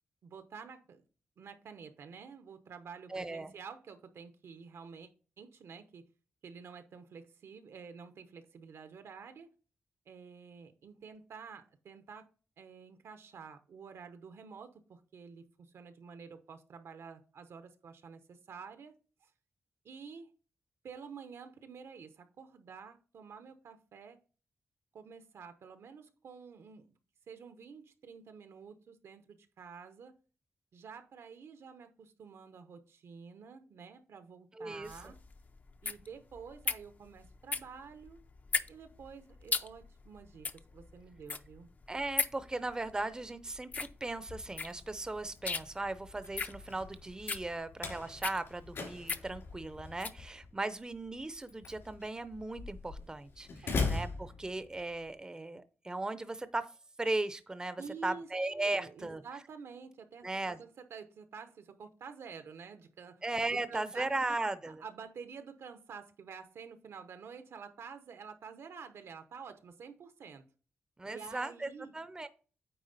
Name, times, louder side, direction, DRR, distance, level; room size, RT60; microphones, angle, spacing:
voice 1, 0.2-1.0 1.4-5.1 5.4-6.0 6.4-9.5 10.1-12.3 12.6-18.9 19.2-19.3 19.8-20.3 20.8-24.2 24.9-27.0 27.3-30.1 30.7-35.2 35.8-38.2 38.7-41.7 53.6-53.7 57.8-58.3 58.6-63.2 63.5-64.4 64.7-70.4 71.0-71.9, right 6 dB, 80° right, 0.9 m, -49 dB
voice 2, 3.1-3.5 34.5-35.1 41.9-56.7 57.0-59.2 60.2-60.6 63.2-64.8 71.0-72.3, right 2 dB, 15° right, 0.5 m, -37 dB
sound 1, 34.8-50.2, left 4 dB, 40° left, 0.5 m, -39 dB
Slam, 44.1-55.0, left 4 dB, 70° left, 3.3 m, -41 dB
9.0 x 3.6 x 4.0 m
wide cardioid pair, 110°, 4 cm